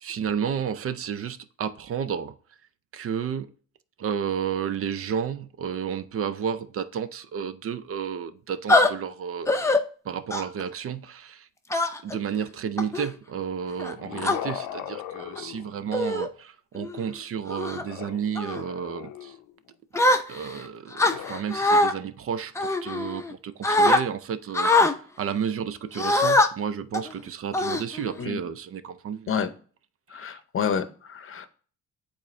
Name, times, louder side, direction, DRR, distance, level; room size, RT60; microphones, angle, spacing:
voice 1, 0.0-2.4 2.9-3.5 4.0-9.6 10.0-11.5 12.0-19.3 20.3-29.3 30.1-30.4, right 7 dB, 50° right, 0.5 m, -32 dB
sound 1, 8.7-8.9 9.5-9.8 10.3-10.6 11.7-12.2 12.8-13.1 13.8-14.4 15.2-15.4 15.9-16.3 16.8-17.0 17.5-17.8 18.4-18.6 19.9-20.6 21.0-21.9 22.6-23.3 23.6-24.0 24.5-24.9 26.0-26.5 26.9-27.1 27.5-28.2, left 2 dB, 10° left, 0.6 m, -22 dB
sound 2, 13.6-16.3 17.8-19.5 20.9-21.4, left 11 dB, 90° left, 0.6 m, -39 dB
voice 2, 30.1-31.5, left 7 dB, 45° left, 0.7 m, -29 dB
8.3 x 3.8 x 3.2 m
cardioid pair, 90°, 30 cm